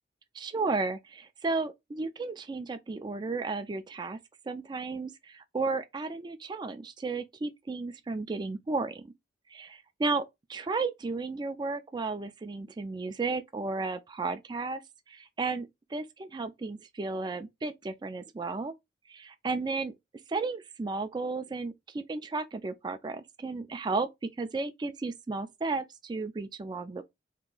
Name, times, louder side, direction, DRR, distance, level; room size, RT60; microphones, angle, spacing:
voice 1, 0.3-4.2 4.5-9.0 9.5-10.2 10.5-14.8 15.1-18.7 19.1-19.9 20.3-27.0, right 3 dB, 25° right, 0.3 m, -33 dB
2.9 x 2.5 x 3.7 m
head